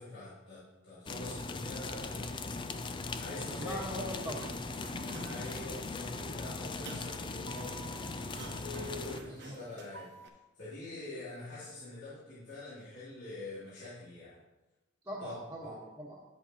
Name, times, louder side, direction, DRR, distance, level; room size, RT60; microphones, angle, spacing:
voice 1, 0.0-2.5 3.2-3.8 5.1-8.2 8.5-10.1 10.6-14.4 15.2-15.7, left 2 dB, 70° left, -12 dB, 2.9 m, -45 dB
sound 1, 1.1-9.2, left 3 dB, 25° left, 0.3 m, -39 dB
voice 2, 3.5-4.5 9.2-9.6 11.2-11.3 15.0-16.2, equal, 10° right, -8 dB, 1.4 m, -41 dB
Sliding door, 3.8-10.3, right 3 dB, 55° right, 1.0 m, -49 dB
10.5 x 7.8 x 2.9 m, 1.1 s
head